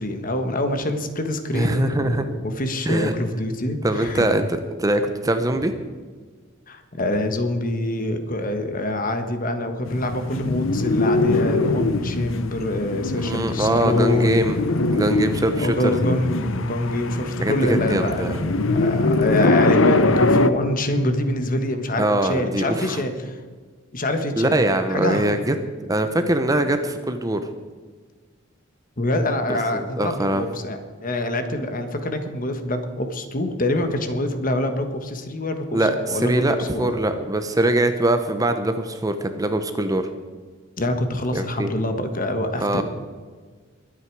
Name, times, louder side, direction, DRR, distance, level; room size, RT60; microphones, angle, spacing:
voice 1, 0.0-4.3 6.7-14.5 15.6-18.4 18.7-23.4 23.9-24.6 24.9-25.3 29.0-35.8 36.1-36.9 40.8-42.8, left 1 dB, 40° left, 7 dB, 1.5 m, -25 dB
voice 2, 1.5-2.3 2.9-3.1 3.8-5.7 13.2-14.6 14.9-16.0 17.4-18.4 22.0-23.0 24.4-25.6 25.9-27.4 29.5-30.5 35.7-40.1 41.3-41.7 42.6-42.8, right 1 dB, 15° right, 8 dB, 0.8 m, -22 dB
sound 1, 9.9-20.5, left 2 dB, 75° left, 0.8 m, -22 dB
22.0 x 8.9 x 4.7 m, 1.5 s
head